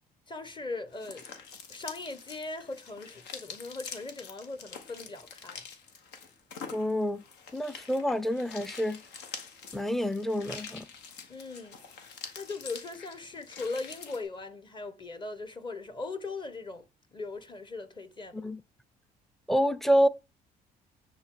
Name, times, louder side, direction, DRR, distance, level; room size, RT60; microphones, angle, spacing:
voice 1, 0.3-1.3 1.7-5.6 11.3-12.0 12.4-16.8 17.1-18.5, left 3 dB, 30° left, 1.3 m, -39 dB
sound 1, 0.9-14.2, left 6 dB, 85° left, 1.5 m, -46 dB
voice 2, 6.7-7.2 7.5-9.0 9.7-10.8 18.3-18.6 19.5-20.1, equal, ahead, 0.6 m, -27 dB
9.7 x 3.9 x 4.9 m
cardioid pair, 110°, 17 cm